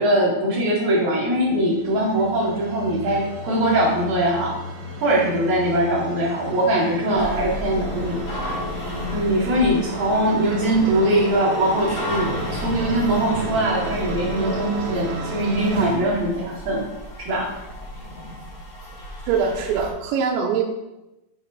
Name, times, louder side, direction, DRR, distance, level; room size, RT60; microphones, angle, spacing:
voice 1, 0.0-4.6 5.0-8.2 9.1-16.9 17.2-17.5, right 1 dB, 50° right, -6 dB, 2.5 m, -21 dB
sound 1, 1.3-16.0, right 2 dB, 65° right, 3.2 m, -33 dB
sound 2, 7.2-19.9, left 1 dB, 45° left, 1.6 m, -34 dB
voice 2, 19.3-20.6, right 6 dB, 85° right, 0 dB, 2.9 m, -22 dB
7.3 x 4.0 x 5.8 m, 0.97 s
omnidirectional pair, 5.2 m